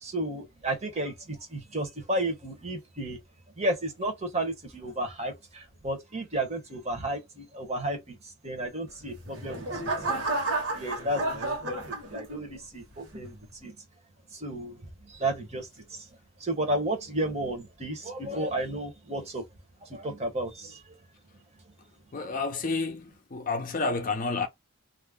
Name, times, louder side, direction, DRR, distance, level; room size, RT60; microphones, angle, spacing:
voice 1, 0.0-3.2 3.6-9.9 10.7-13.7 14.3-16.1 16.4-19.4 19.8-20.9, right 1 dB, 30° right, 0.8 m, -33 dB
sound 1, 9.0-12.6 13.1-13.5, right 2 dB, 65° right, 1.2 m, -32 dB
voice 2, 22.1-24.5, left 3 dB, 40° left, 0.5 m, -30 dB
2.5 x 2.1 x 3.3 m
head